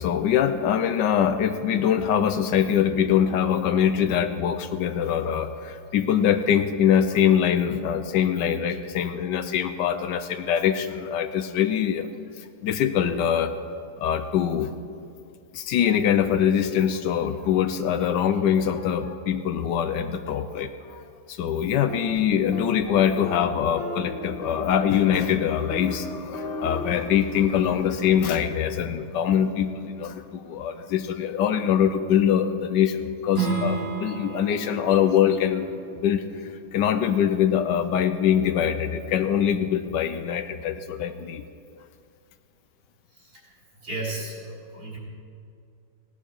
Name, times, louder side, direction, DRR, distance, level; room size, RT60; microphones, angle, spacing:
voice 1, 0.0-12.1 12.4-13.5 14.0-14.7 15.5-21.0 21.3-35.7 36.0-41.4, left 9 dB, 75° left, 10 dB, 1.2 m, -23 dB
sound 1, 21.9-22.2 22.5-22.8 23.2-23.5 23.8-24.7 25.1-25.4 25.7-26.0 26.3-27.0, left 2 dB, 35° left, 1.3 m, -34 dB
Strum, 33.3-38.5, right 3 dB, 85° right, 3.5 m, -34 dB
voice 2, 43.1-43.5 43.8-45.0, right 2 dB, 50° right, -4 dB, 4.0 m, -35 dB
17.0 x 11.0 x 4.6 m, 2.4 s
omnidirectional pair, 2.0 m